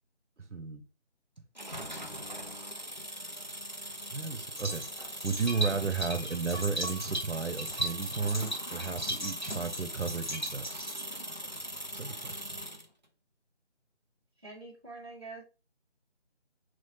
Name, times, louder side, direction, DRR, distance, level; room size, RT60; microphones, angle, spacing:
voice 1, 0.5-0.8 2.0-2.3 4.1-4.9 5.2-10.9 11.9-12.6, right 4 dB, 80° right, 1.0 m, -34 dB
sound 1, 1.6-12.9, equal, 40° right, 0.5 m, -41 dB
sound 2, 4.6-11.0, right 1 dB, 40° left, 1.2 m, -37 dB
voice 2, 14.4-15.4, right 3 dB, 20° right, 1.1 m, -45 dB
5.6 x 3.1 x 2.7 m
figure-of-eight pair, 175°, 35 cm